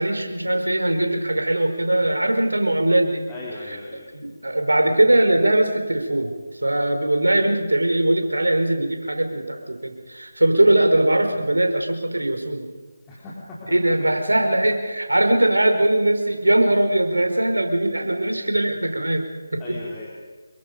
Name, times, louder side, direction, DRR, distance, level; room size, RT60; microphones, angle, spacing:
voice 1, 0.0-3.3 4.1-6.4 6.6-12.7 13.7-19.8, right 1 dB, 80° right, 5 dB, 4.7 m, -20 dB
voice 2, 3.3-4.1 13.1-13.3 13.6-13.8 19.6-20.1, left 2 dB, 15° left, -7 dB, 4.0 m, -37 dB
28.0 x 23.0 x 5.4 m, 1.4 s
figure-of-eight pair, 155°, 0 cm